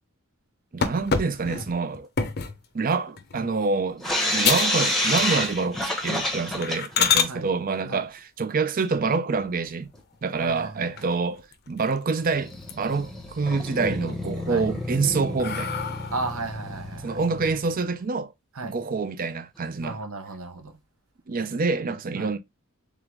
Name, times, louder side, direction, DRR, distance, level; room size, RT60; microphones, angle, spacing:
voice 1, 0.7-2.1 2.7-9.9 10.2-15.8 17.0-18.3 18.6-20.0 21.3-22.4, right 4 dB, 40° right, 0.5 m, -27 dB
sound 1, 0.8-2.6 3.2-3.5 3.9-4.0 4.4-4.8 5.1-5.6 6.0-6.1 6.6-7.3 9.3-10.0 10.5-10.6 11.0-11.1 11.4-12.2 12.5-13.1 13.5-14.1 14.7-16.4, left 6 dB, 50° left, 0.6 m, -28 dB
sound 2, 4.0-7.1 7.4-7.5 7.8-7.9 8.8-8.9 9.9-10.0 10.5-10.6 11.0-11.1 12.2-17.8, left 1 dB, ahead, 0.9 m, -29 dB
voice 2, 10.4-11.1 14.5-14.7 16.1-17.2 18.5-18.8 19.8-20.8 22.2-22.3, right 3 dB, 70° right, 0.9 m, -35 dB
3.7 x 3.5 x 3.1 m
head